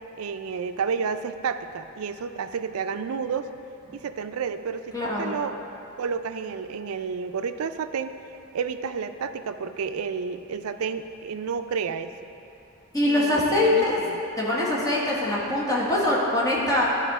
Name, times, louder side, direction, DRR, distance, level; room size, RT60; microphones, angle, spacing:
voice 1, 0.2-3.5 3.9-5.6 6.0-8.1 8.5-12.1 13.0-14.2, right 6 dB, 90° right, 10 dB, 0.4 m, -31 dB
voice 2, 4.9-5.3 12.9-14.1 14.4-16.8, left 1 dB, 15° left, -6 dB, 1.5 m, -23 dB
12.0 x 4.3 x 4.9 m, 2.7 s
head